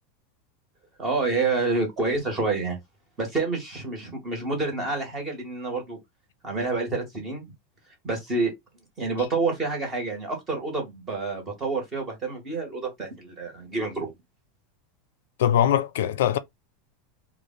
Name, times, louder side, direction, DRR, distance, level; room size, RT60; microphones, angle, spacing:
voice 1, 1.0-2.8 3.2-6.0 6.4-7.4 8.0-8.5 9.0-14.1, right 3 dB, 20° right, 1.6 m, -28 dB
voice 2, 15.4-16.4, left 10 dB, 85° left, 0.4 m, -21 dB
3.2 x 2.4 x 3.9 m
supercardioid pair, 165°, 0 cm